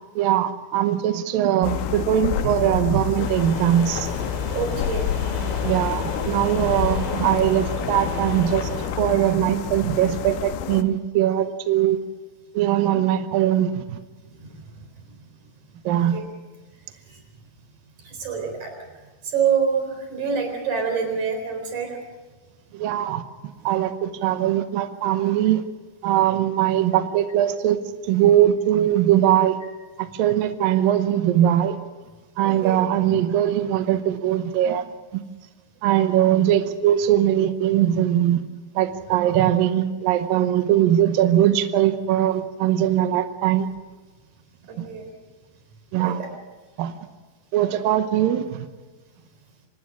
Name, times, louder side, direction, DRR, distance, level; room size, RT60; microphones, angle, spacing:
voice 1, 0.2-4.1 5.6-8.7 9.0-12.0 12.5-14.0 15.9-16.2 22.7-23.2 23.7-25.6 26.0-27.8 28.1-29.6 30.0-31.8 32.4-34.8 35.1-35.2 35.8-38.5 38.8-43.7 44.8-44.9 45.9-46.2 46.8-46.9 47.5-48.7, right 11 dB, 85° right, 9 dB, 2.0 m, -21 dB
sound 1, 1.6-10.8, left 12 dB, 85° left, 3.3 m, -29 dB
sound 2, 3.2-8.9, left 2 dB, 65° left, 7.5 m, -31 dB
voice 2, 4.5-5.1 14.4-14.6 16.1-16.2 17.1-17.2 18.0-18.7 19.2-22.0 32.4-32.8 44.7-45.1 46.0-46.3 47.6-47.7, right 6 dB, 40° right, 4 dB, 5.1 m, -26 dB
25.0 x 20.0 x 6.2 m, 1.3 s
omnidirectional pair, 5.4 m